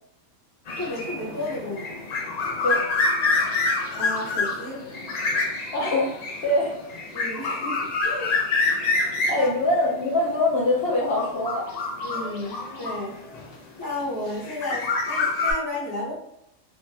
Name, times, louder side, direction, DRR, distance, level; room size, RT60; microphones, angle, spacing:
sound 1, 0.7-13.5 14.3-15.5, left 3 dB, 85° left, 0.3 m, -27 dB
voice 1, 0.8-2.0 4.0-4.8 7.1-8.3 9.3-9.5 12.0-13.2 13.8-16.1, left 2 dB, 20° left, -7 dB, 0.7 m, -32 dB
voice 2, 5.7-6.2 6.4-6.8 9.3-11.7, left 1 dB, 55° left, -3 dB, 0.9 m, -23 dB
2.8 x 2.1 x 2.6 m, 0.79 s
omnidirectional pair, 1.3 m